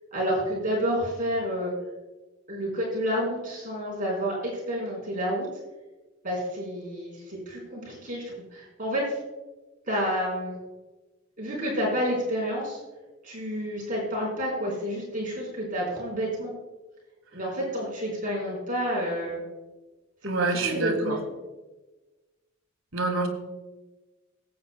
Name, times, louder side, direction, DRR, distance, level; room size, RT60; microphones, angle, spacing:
voice 1, 0.1-1.7 2.5-5.5 6.2-8.2 8.5-9.1 9.9-10.6 11.4-12.8 13.2-16.5 17.3-19.4 20.2-21.2, equal, 45° right, -4 dB, 3.9 m, -29 dB
voice 2, 20.2-21.2 22.9-23.3, right 3 dB, 85° right, 4 dB, 1.8 m, -26 dB
19.0 x 8.3 x 2.2 m, 1.2 s
head